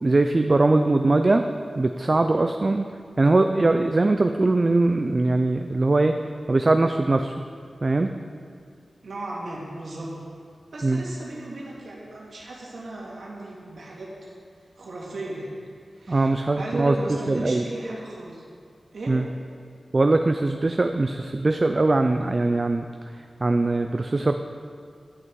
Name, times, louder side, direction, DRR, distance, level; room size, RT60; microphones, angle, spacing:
voice 1, 0.0-1.5 1.8-2.9 3.2-7.5 7.8-8.1 10.8-11.0 16.1-16.9 17.3-17.6 19.1-19.3 19.9-22.9 23.1-24.3, right 2 dB, 40° right, 6 dB, 0.3 m, -21 dB
voice 2, 9.0-10.1 10.7-14.3 14.8-15.5 15.9-16.3 16.6-18.4 18.9-19.1, right 1 dB, 75° right, -4 dB, 2.1 m, -35 dB
10.5 x 6.1 x 4.6 m, 2.3 s
wide cardioid pair, 80°, 0 cm